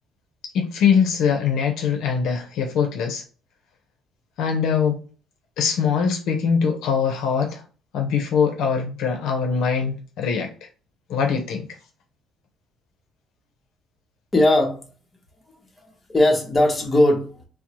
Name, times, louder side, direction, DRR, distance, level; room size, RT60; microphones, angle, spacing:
voice 1, 0.5-3.2 4.4-4.9 5.6-7.6 7.9-10.5 11.1-11.7, left 6 dB, 75° left, 0.6 m, -22 dB
voice 2, 14.3-14.8 15.8-17.4, left 1 dB, 15° left, 0.8 m, -19 dB
2.5 x 2.0 x 2.9 m
cardioid pair, 110°, 0 cm